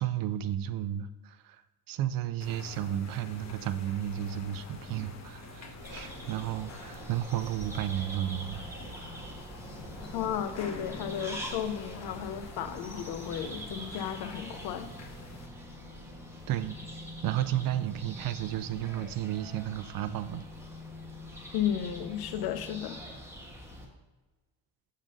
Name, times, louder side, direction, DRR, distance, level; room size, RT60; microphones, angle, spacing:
voice 1, 0.0-1.6 1.9-8.7 16.5-16.8 17.2-20.5, right 11 dB, 65° right, 13 dB, 0.5 m, -33 dB
sound 1, 2.4-15.5, left 2 dB, 45° left, 1.1 m, -47 dB
sound 2, 5.8-23.9, equal, 5° right, 1.5 m, -44 dB
voice 2, 10.1-14.9 21.5-23.0, left 9 dB, 75° left, 10 dB, 0.7 m, -34 dB
7.4 x 3.8 x 5.3 m, 1.2 s
cardioid pair, 85°, 37 cm